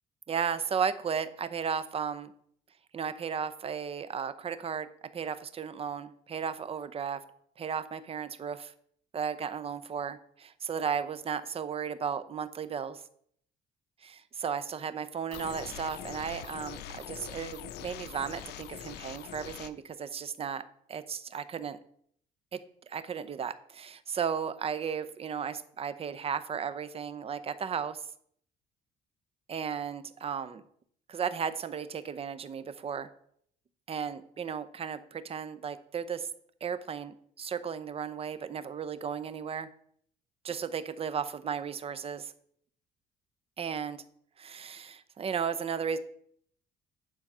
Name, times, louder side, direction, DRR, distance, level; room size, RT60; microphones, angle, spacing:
voice 1, 0.3-2.3 2.9-4.9 5.1-7.2 7.6-8.7 9.1-13.0 14.0-20.6 20.9-21.8 22.5-22.6 22.9-28.0 29.5-30.6 31.1-33.1 33.9-36.3 36.6-39.7 40.4-42.3 43.6-44.0 44.4-46.0, right 7 dB, 35° right, 13 dB, 0.7 m, -35 dB
sound 1, 15.3-19.7, left 10 dB, 75° left, 0.7 m, -43 dB
10.0 x 3.9 x 6.1 m, 0.65 s
cardioid pair, 110°, 17 cm